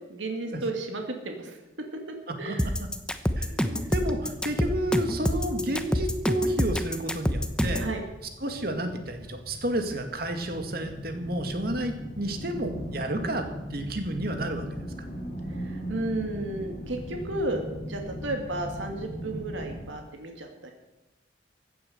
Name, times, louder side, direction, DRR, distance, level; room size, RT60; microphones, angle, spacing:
voice 1, 0.1-1.6 2.4-2.7 7.8-8.0 15.6-17.6 17.9-20.7, right 2 dB, 90° right, 3 dB, 2.4 m, -33 dB
voice 2, 2.3-2.6 3.4-7.9 8.4-14.7, right 1 dB, 55° right, 6 dB, 2.2 m, -31 dB
sound 1, 2.6-7.9, equal, 5° left, 0.9 m, -26 dB
sound 2, 3.8-19.9, equal, 40° left, 3.9 m, -39 dB
15.5 x 9.5 x 7.9 m, 1.0 s
head